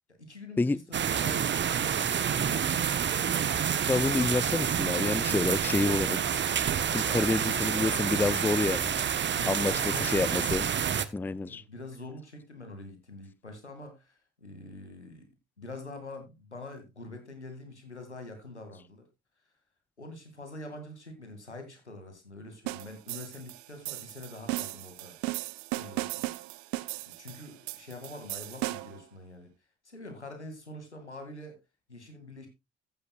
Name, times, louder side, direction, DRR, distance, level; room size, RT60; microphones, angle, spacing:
voice 1, 0.2-2.9 7.3-8.3 9.4-10.5 11.4-15.3 15.6-19.1 20.0-25.2 25.7-26.3 27.1-29.5 29.8-31.6 31.9-32.5, left 2 dB, 90° left, 2.4 m, -45 dB
sound 1, 0.9-11.1, right 8 dB, 35° right, 1.1 m, -28 dB
voice 2, 3.9-6.2 6.6-6.7 6.9-9.0 9.5-9.7 10.0-10.7 11.1-11.6, left 3 dB, 5° left, 0.5 m, -28 dB
sound 2, 22.7-29.0, right 20 dB, 55° right, 0.7 m, -36 dB
15.0 x 8.7 x 2.4 m
figure-of-eight pair, 50°, 33 cm